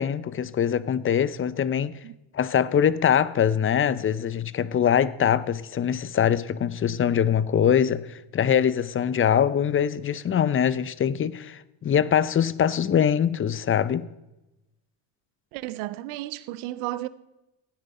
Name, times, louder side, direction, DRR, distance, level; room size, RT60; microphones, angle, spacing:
voice 1, 0.0-2.0 2.3-14.1, left 8 dB, 25° left, 0.6 m, -23 dB
voice 2, 15.5-17.1, right 16 dB, 75° right, 0.8 m, -33 dB
16.0 x 9.4 x 4.2 m
supercardioid pair, 85°, 49 cm